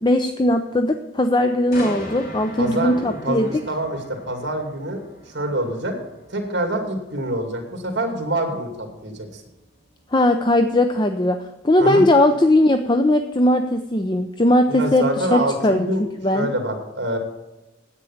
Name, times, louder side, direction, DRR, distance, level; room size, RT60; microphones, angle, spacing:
voice 1, 0.0-3.5 10.1-16.5, left 1 dB, 25° left, 7 dB, 0.5 m, -19 dB
sound 1, 1.7-15.6 16.0-16.2, equal, 50° left, 2.1 m, -42 dB
voice 2, 2.6-5.1 5.3-5.9 6.3-9.4 11.8-12.1 14.7-16.0 16.3-17.2, right 1 dB, 60° right, 4 dB, 2.4 m, -25 dB
9.8 x 8.3 x 7.1 m, 1.0 s
head